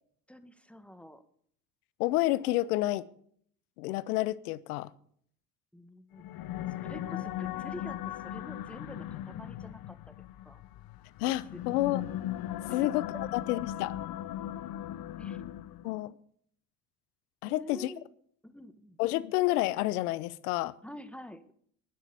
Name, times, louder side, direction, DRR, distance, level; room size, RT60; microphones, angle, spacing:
voice 1, 0.3-1.2 5.7-6.4 6.8-10.1 10.4-10.6 11.5-11.6 12.7-12.9 13.7-13.8 15.1-15.4 15.7-16.1 17.4-18.0 18.4-19.0 20.8-21.5, equal, 5° left, 1.5 m, -47 dB
voice 2, 2.0-3.0 3.8-4.9 11.2-12.1 12.7-13.0 13.5-13.9 15.8-16.1 17.4-17.9 19.0-20.7, left 17 dB, 80° left, 0.8 m, -29 dB
sound 1, 6.1-16.0, left 12 dB, 50° left, 0.8 m, -38 dB
12.5 x 10.0 x 7.0 m
hypercardioid pair, 65°, 44 cm